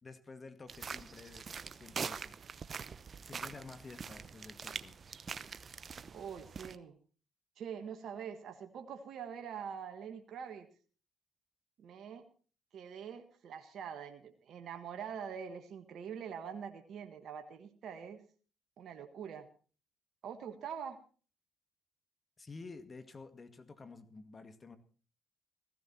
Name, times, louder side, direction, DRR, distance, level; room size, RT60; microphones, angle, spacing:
voice 1, 0.0-2.4 3.2-5.0 22.4-24.8, left 4 dB, 35° left, 10 dB, 2.0 m, -51 dB
sound 1, 0.7-6.8, right 6 dB, 45° right, 0.8 m, -44 dB
voice 2, 6.1-7.0 7.6-10.7 11.8-12.2 12.7-18.2 18.8-19.5 20.2-21.0, right 7 dB, 65° right, 7 dB, 1.5 m, -44 dB
15.5 x 15.5 x 4.4 m, 0.38 s
supercardioid pair, 65°, 0 cm